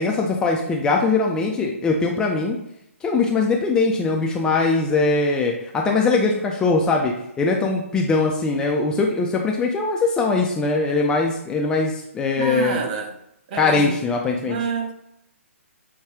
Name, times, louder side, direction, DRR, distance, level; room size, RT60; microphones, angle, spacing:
voice 1, 0.0-2.6 3.0-12.8 13.6-14.6, left 3 dB, 10° left, 0.4 m, -21 dB
voice 2, 12.4-13.1 13.5-14.0 14.4-14.9, right 5 dB, 35° right, 0.6 m, -27 dB
5.9 x 2.3 x 3.5 m
figure-of-eight pair, 130°, 8 cm